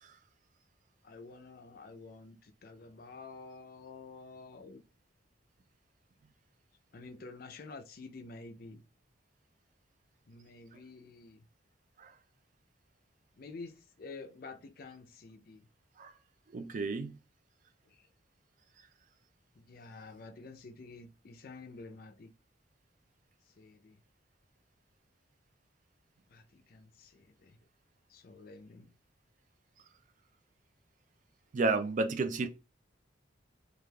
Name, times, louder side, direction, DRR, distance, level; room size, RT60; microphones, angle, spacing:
voice 1, 1.0-4.8 6.9-8.8 10.3-11.5 13.4-15.7 17.9-18.1 19.6-22.3 23.6-24.0 26.3-27.6 28.1-28.9, left 3 dB, 50° left, 0.4 m, -49 dB
voice 2, 16.5-17.2 31.5-32.5, right 3 dB, 40° right, 0.3 m, -31 dB
3.3 x 2.5 x 2.2 m
head